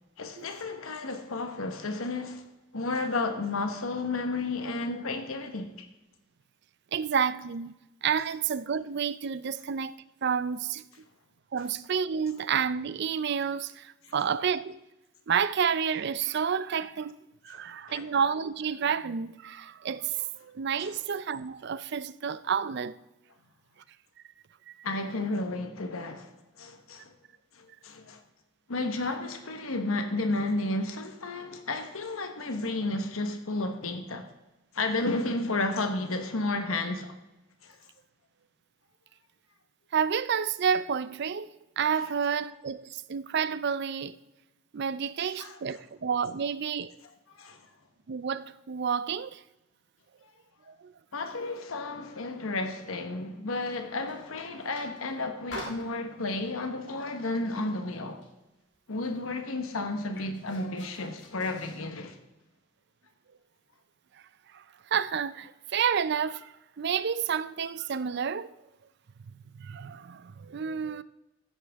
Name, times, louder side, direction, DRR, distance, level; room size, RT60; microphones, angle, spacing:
voice 1, 0.2-2.4 2.7-5.9 17.5-17.6 17.9-18.1 20.8-20.9 24.8-26.3 26.6-27.1 27.6-28.2 28.7-34.2 34.7-37.1 37.6-37.7 45.4-45.6 47.3-47.6 51.1-58.2 58.9-62.2, left 2 dB, 75° left, 1.1 m, -32 dB
voice 2, 6.9-7.7 8.0-9.9 10.2-10.8 11.5-14.8 15.3-17.2 17.4-23.0 24.7-24.8 39.9-44.2 44.7-47.0 48.1-49.4 50.7-50.9 64.5-64.6 64.9-68.5 69.2-71.0, right 7 dB, 50° right, 0.4 m, -30 dB
sound 1, 53.6-54.2 54.6-55.1 55.5-56.5 57.0-57.3 57.5-58.4 58.7-58.8 59.0-61.9, left 2 dB, 55° left, 2.6 m, -46 dB
14.0 x 9.8 x 3.5 m
head